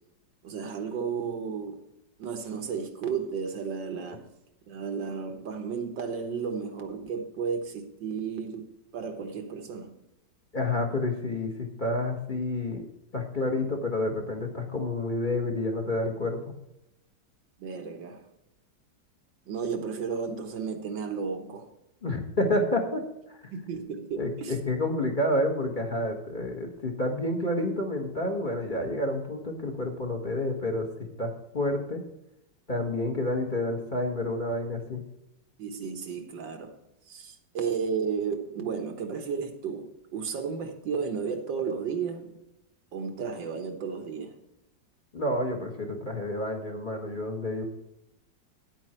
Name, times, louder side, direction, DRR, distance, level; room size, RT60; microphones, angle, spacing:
voice 1, 0.4-1.8 2.2-4.3 4.7-8.7 8.9-10.0 17.6-18.2 19.5-21.7 23.5-24.6 35.6-36.7 37.1-42.4 42.9-44.4, right 6 dB, 75° right, 2.0 m, -33 dB
voice 2, 10.5-12.8 13.1-16.4 22.0-23.0 23.3-23.4 24.2-30.9 31.2-32.0 32.7-35.0 45.1-47.6, left 1 dB, 30° left, 1.5 m, -29 dB
10.0 x 8.8 x 4.4 m
omnidirectional pair, 2.0 m